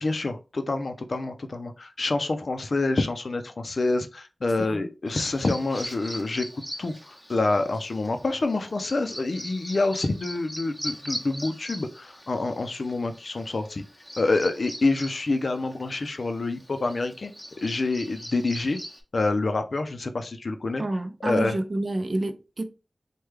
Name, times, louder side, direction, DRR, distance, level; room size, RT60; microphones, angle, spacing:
voice 1, 0.0-6.5 6.8-13.8 14.2-17.3 17.6-18.8 19.1-20.8 21.2-21.6, left 3 dB, 70° left, 0.4 m, -27 dB
Bird vocalization bird call bird song, 5.1-19.0, equal, ahead, 0.8 m, -41 dB
voice 2, 20.8-22.6, right 2 dB, 55° right, 0.4 m, -29 dB
3.3 x 2.2 x 3.2 m
cardioid pair, 45°, 0 cm